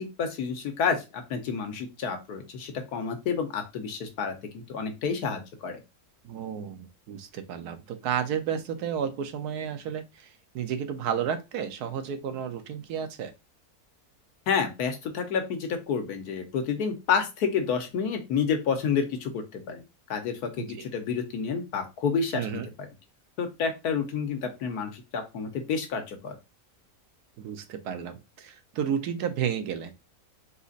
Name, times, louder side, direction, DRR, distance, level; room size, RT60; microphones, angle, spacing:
voice 1, 0.0-5.8 14.5-19.8 20.1-22.6 23.4-26.4, left 6 dB, 80° left, 6 dB, 1.4 m, -29 dB
voice 2, 6.2-13.3 20.6-20.8 22.3-22.7 27.4-29.9, right 8 dB, 85° right, 8 dB, 1.3 m, -32 dB
4.2 x 2.5 x 3.9 m, 0.26 s
omnidirectional pair, 1.6 m